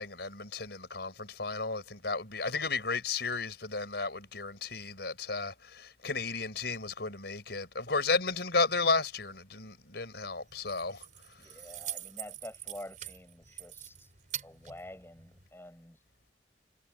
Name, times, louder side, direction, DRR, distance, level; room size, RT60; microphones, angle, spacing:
voice 1, 0.0-11.1, left 4 dB, 60° left, 6.1 m, -33 dB
Keys jangling, 10.4-15.5, right 11 dB, 45° right, 5.4 m, -44 dB
voice 2, 11.4-14.1 14.4-16.0, left 1 dB, 15° left, 6.3 m, -48 dB
head